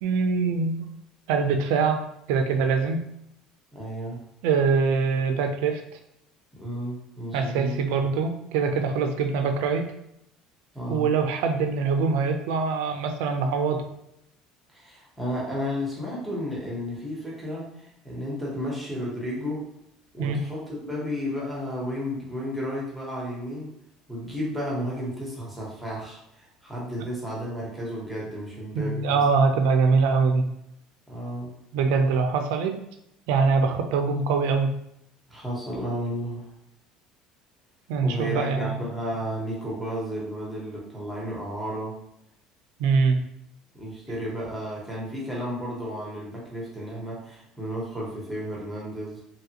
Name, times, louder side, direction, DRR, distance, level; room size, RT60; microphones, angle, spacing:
voice 1, 0.0-0.9 1.3-3.0 4.4-5.8 7.3-9.9 10.9-13.9 20.2-20.4 28.7-30.4 31.7-32.8 33.3-34.7 37.9-38.9 42.8-43.2, right 5 dB, 85° right, 6 dB, 0.4 m, -23 dB
voice 2, 3.7-4.3 6.5-7.8 10.7-11.1 14.7-19.7 20.1-23.7 24.1-29.2 31.1-31.6 35.3-36.5 38.0-42.0 43.7-49.2, equal, 5° right, -5 dB, 1.1 m, -33 dB
2.9 x 2.4 x 2.9 m, 0.78 s
cardioid pair, 130°, 0 cm